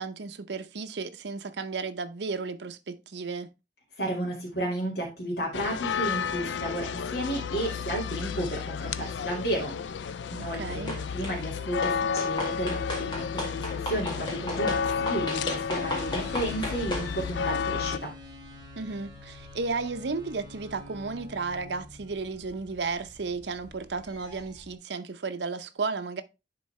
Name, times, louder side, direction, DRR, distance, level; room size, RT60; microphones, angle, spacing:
voice 1, 0.0-3.5 10.5-11.0 18.8-26.2, right 4 dB, 75° right, 0.7 m, -33 dB
voice 2, 4.0-9.7 10.0-18.1, right 1 dB, 65° left, 2.0 m, -33 dB
sound 1, 5.5-18.0, left 6 dB, 85° left, 0.4 m, -32 dB
sound 2, 10.9-11.4 11.8-17.1, left 1 dB, 25° left, 1.9 m, -35 dB
sound 3, 15.7-24.7, left 1 dB, 25° right, 1.4 m, -47 dB
9.8 x 3.9 x 3.2 m
head